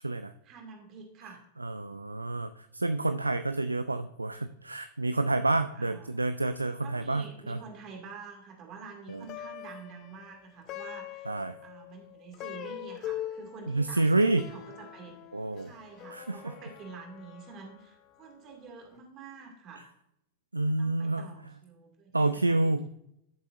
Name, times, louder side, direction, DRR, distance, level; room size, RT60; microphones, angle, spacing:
voice 1, 0.4-1.4 5.8-6.1 6.8-11.3 11.6-15.2 15.6-19.9 20.8-22.7, right 5 dB, 35° right, 2 dB, 2.2 m, -47 dB
voice 2, 1.6-7.6 9.1-9.3 11.3-11.6 13.7-14.4 15.3-15.7 16.1-16.4 20.5-21.3 22.1-22.9, right 2 dB, 80° right, 11 dB, 0.3 m, -28 dB
Plucked string instrument, 9.1-18.5, left 12 dB, 35° left, 0.7 m, -43 dB
13.0 x 6.9 x 2.5 m, 0.78 s
figure-of-eight pair, 90°, 0 cm